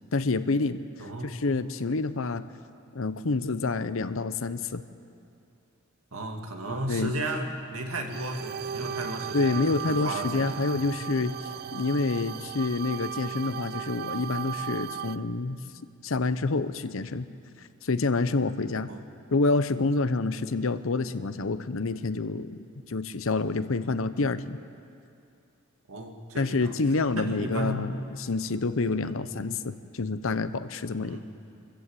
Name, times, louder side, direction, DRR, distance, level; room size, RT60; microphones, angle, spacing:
voice 1, 0.1-0.8 1.2-2.5 2.9-4.8 6.9-7.1 9.3-11.3 11.7-15.6 16.0-17.3 17.6-18.9 19.3-24.6 26.4-31.2, left 3 dB, 65° left, 12 dB, 0.8 m, -28 dB
voice 2, 1.0-1.4 6.1-10.8 18.9-19.0 25.9-26.8 27.1-28.0 29.0-29.4 31.0-31.2, right 1 dB, 75° right, 2 dB, 2.3 m, -34 dB
sound 1, 8.1-15.2, right 8 dB, 45° right, 0.4 m, -36 dB
26.0 x 14.5 x 8.3 m, 2.5 s
head